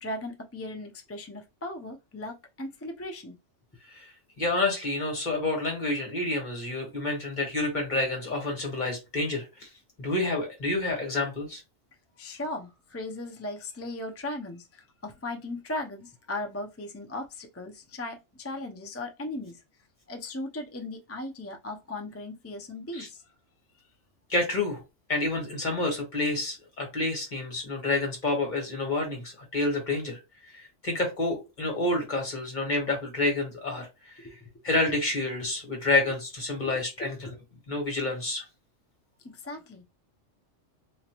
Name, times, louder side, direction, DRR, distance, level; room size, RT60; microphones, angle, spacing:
voice 1, 0.0-3.3 12.2-19.6 20.1-23.3 34.2-34.5 36.6-36.8 37.3-37.4 39.2-39.8, left 2 dB, 20° left, 0.4 m, -37 dB
voice 2, 3.8-9.7 10.0-11.6 22.9-23.1 24.3-24.8 25.1-34.3 34.6-37.3 37.7-38.4, left 2 dB, 35° left, 1.7 m, -29 dB
3.8 x 2.9 x 3.0 m
omnidirectional pair, 1.3 m